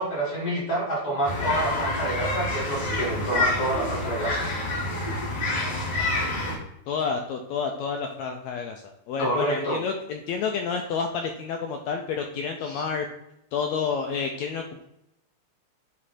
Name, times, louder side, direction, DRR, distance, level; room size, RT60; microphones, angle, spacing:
voice 1, 0.0-4.4 9.2-9.8 12.6-12.8, right 1 dB, 40° left, -4 dB, 3.0 m, -28 dB
sound 1, 1.2-6.5, left 2 dB, 75° left, 4.3 m, -27 dB
voice 2, 6.9-13.1 13.5-14.8, left 5 dB, 90° left, 3 dB, 1.6 m, -29 dB
9.5 x 3.2 x 4.2 m, 0.79 s
omnidirectional pair, 3.7 m